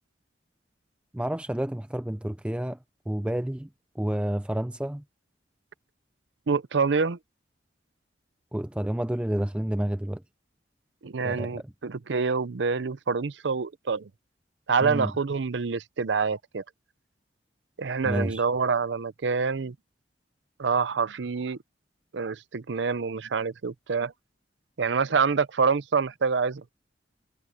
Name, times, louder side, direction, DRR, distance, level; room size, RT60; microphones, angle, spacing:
voice 1, 1.1-2.8 3.1-3.7 4.0-5.0 8.5-10.2 11.2-11.6 14.8-15.1 18.0-18.4, right 1 dB, 5° right, 0.4 m, -29 dB
voice 2, 6.5-7.2 11.0-14.1 14.7-16.6 17.8-19.7 20.6-21.6 22.1-24.1 24.8-26.7, right 5 dB, 75° right, 0.6 m, -26 dB
head